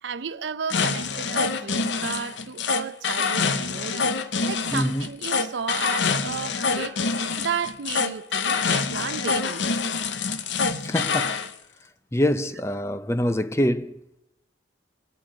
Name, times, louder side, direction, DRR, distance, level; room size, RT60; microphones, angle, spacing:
voice 1, 0.0-4.1 4.4-9.6, right 6 dB, 80° right, 0.6 m, -33 dB
sound 1, 0.7-11.5, left 5 dB, 80° left, 0.8 m, -26 dB
voice 2, 4.7-5.1 10.8-11.4 12.1-14.2, left 1 dB, 15° left, 0.6 m, -25 dB
25.0 x 9.3 x 5.0 m
head